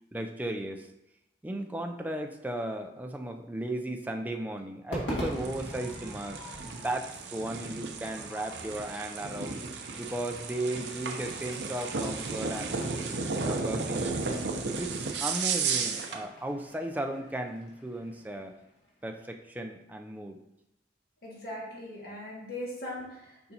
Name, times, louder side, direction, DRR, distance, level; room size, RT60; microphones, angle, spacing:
voice 1, 0.1-0.9 1.4-9.6 10.0-12.8 13.4-14.2 14.8-18.6 19.0-20.4, right 1 dB, 10° right, 4 dB, 0.4 m, -36 dB
Crowd / Fireworks, 4.9-19.3, equal, 85° left, 2.0 m, -44 dB
sound 1, 5.3-16.2, right 4 dB, 70° right, 0.7 m, -34 dB
voice 2, 21.2-23.5, left 1 dB, 60° left, -4 dB, 2.0 m, -40 dB
6.8 x 5.1 x 2.8 m, 0.89 s
head